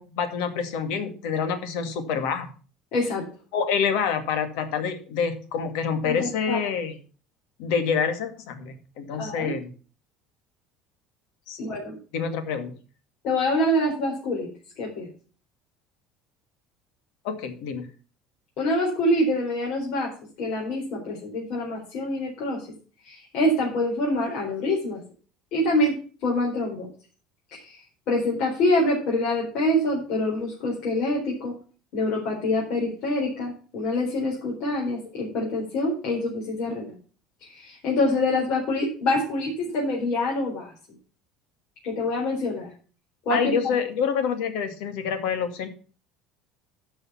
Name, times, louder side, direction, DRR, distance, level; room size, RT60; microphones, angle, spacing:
voice 1, 0.0-2.5 3.5-7.0 7.6-9.7 11.5-11.7 12.1-12.7 17.2-17.9 43.3-45.7, left 6 dB, 75° left, 8 dB, 2.2 m, -27 dB
voice 2, 2.9-3.2 6.0-6.6 9.2-9.5 11.6-12.0 13.2-14.5 14.8-15.1 18.6-20.1 20.4-22.7 23.0-25.0 25.5-25.9 26.2-26.9 27.5-27.8 28.1-31.5 31.9-36.9 37.4-40.7 41.8-42.7 43.2-43.7, left 1 dB, 55° left, -3 dB, 4.4 m, -25 dB
13.5 x 5.7 x 5.7 m, 0.38 s
cardioid pair, 155°, 0 cm